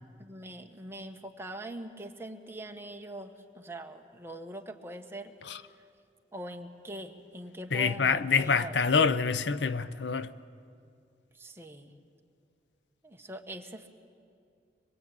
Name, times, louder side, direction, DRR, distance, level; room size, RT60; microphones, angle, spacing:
voice 1, 0.2-5.3 5.8-5.9 6.3-8.9 11.3-11.9 13.0-13.9, right 1 dB, 15° right, 1.4 m, -43 dB
voice 2, 7.7-10.3, left 5 dB, 80° left, 0.7 m, -26 dB
24.5 x 22.5 x 8.8 m
head